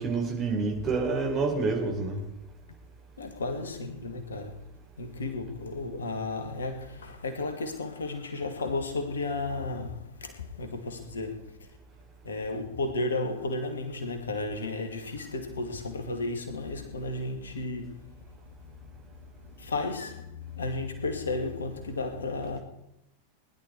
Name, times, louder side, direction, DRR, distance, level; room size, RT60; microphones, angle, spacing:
voice 1, 0.0-2.2, right 4 dB, 30° right, 4.8 m, -28 dB
voice 2, 3.2-4.6 5.0-11.7 12.2-18.1 19.5-22.6, left 2 dB, 70° left, 2.4 m, -33 dB
20.5 x 11.5 x 4.8 m
figure-of-eight pair, 90°, 0 cm